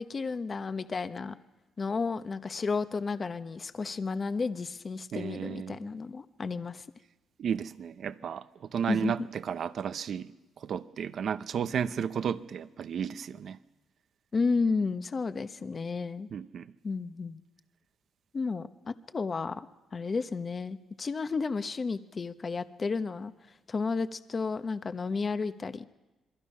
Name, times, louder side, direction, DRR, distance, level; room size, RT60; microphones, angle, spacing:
voice 1, 0.0-1.4 1.8-6.8 8.9-9.3 14.3-16.3 16.8-17.4 18.3-19.7 19.9-23.3 23.7-25.8, left 4 dB, 35° left, 11 dB, 1.0 m, -32 dB
voice 2, 5.1-5.8 7.4-8.4 8.7-10.3 10.6-13.6 16.3-16.7, right 7 dB, 60° right, 13 dB, 0.8 m, -33 dB
27.0 x 22.5 x 5.6 m, 1.1 s
cardioid pair, 90°, 0 cm